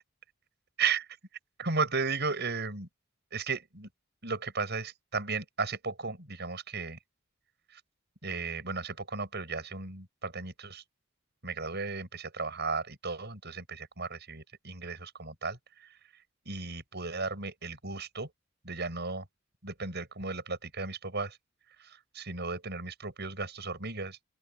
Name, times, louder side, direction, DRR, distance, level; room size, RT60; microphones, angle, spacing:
voice 1, 1.6-2.9 3.3-3.9 4.2-7.0 7.7-7.8 8.2-10.8 11.4-15.9 16.5-18.3 18.6-19.3 19.6-21.4 21.8-24.2, right 4 dB, 55° right, 7.9 m, -35 dB
open air
head